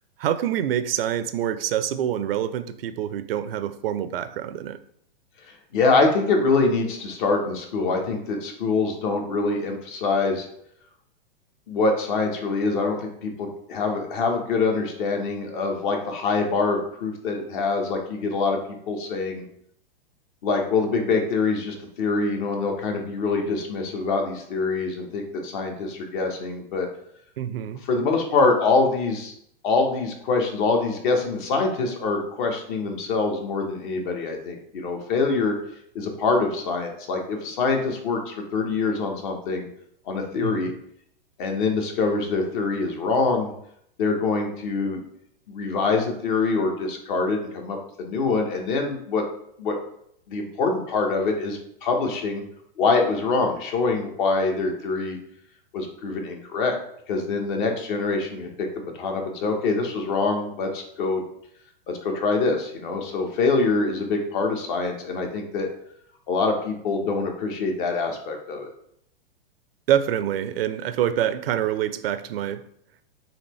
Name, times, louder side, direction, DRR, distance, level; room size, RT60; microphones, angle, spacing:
voice 1, 0.2-4.8 27.4-27.8 40.3-40.7 69.9-72.6, right 10 dB, 75° right, 0.5 m, -26 dB
voice 2, 5.5-10.5 11.7-18.6 18.9-19.4 20.4-26.9 27.8-29.3 29.6-35.5 35.9-39.7 40.1-40.7 41.4-43.5 44.0-45.0 45.5-49.2 49.6-49.7 50.3-52.4 52.8-55.2 55.7-56.8 57.1-61.2 61.9-65.7 66.3-68.7, left 3 dB, 55° left, 1.1 m, -24 dB
4.2 x 2.9 x 3.1 m
hypercardioid pair, 125°, 29 cm